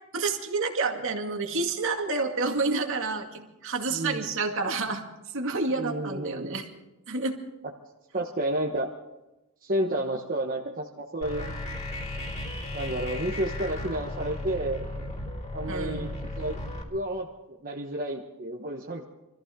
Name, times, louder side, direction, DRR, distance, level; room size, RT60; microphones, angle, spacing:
voice 1, 0.1-5.0 5.3-6.6 7.1-7.4 15.7-16.0, right 3 dB, 65° right, 2 dB, 2.2 m, -29 dB
voice 2, 3.9-4.3 5.7-6.6 8.1-8.9 9.6-11.5 12.7-14.8 15.5-16.1 16.4-16.6 16.9-17.3 17.6-19.0, right 1 dB, 40° right, -1 dB, 1.3 m, -31 dB
sound 1, 11.2-16.8, left 1 dB, 35° left, 3.1 m, -35 dB
25.0 x 14.5 x 3.8 m, 0.98 s
head